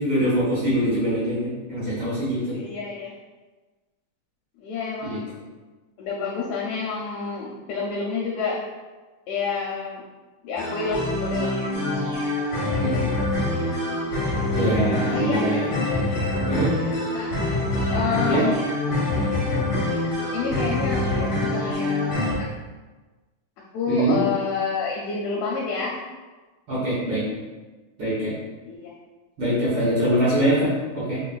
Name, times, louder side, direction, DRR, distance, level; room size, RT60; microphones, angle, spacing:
voice 1, 0.0-2.6 5.0-5.2 12.8-13.1 14.5-15.7 16.5-16.7 18.2-18.5 23.9-24.2 26.7-27.2 28.0-28.3 29.4-31.2, right 1 dB, 55° right, -9 dB, 1.8 m, -23 dB
voice 2, 2.5-3.1 4.6-5.3 6.0-8.6 9.3-10.0 10.4-11.5 15.1-15.6 17.1-17.3 17.9-18.6 20.3-22.5 23.7-26.0 28.6-28.9 29.9-30.0, left 5 dB, 80° left, -3 dB, 1.7 m, -29 dB
sound 1, 10.6-22.4, left 1 dB, 50° left, 1.3 m, -25 dB
4.1 x 4.0 x 2.3 m, 1.3 s
omnidirectional pair, 3.3 m